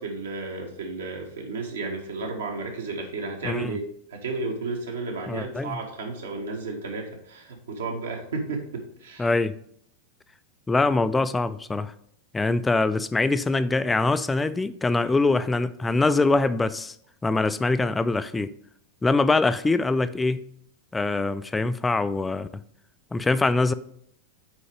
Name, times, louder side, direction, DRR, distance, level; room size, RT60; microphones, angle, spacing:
voice 1, 0.0-3.8 4.1-9.3, right 3 dB, 65° right, 1 dB, 1.5 m, -33 dB
voice 2, 3.4-3.8 5.3-5.8 9.2-9.5 10.7-11.9 12.3-17.0 17.2-18.5 19.0-20.4 20.9-22.5 23.1-23.7, left 3 dB, 10° left, 13 dB, 0.4 m, -23 dB
6.2 x 4.9 x 4.9 m, 0.68 s
figure-of-eight pair, 90°, 0 cm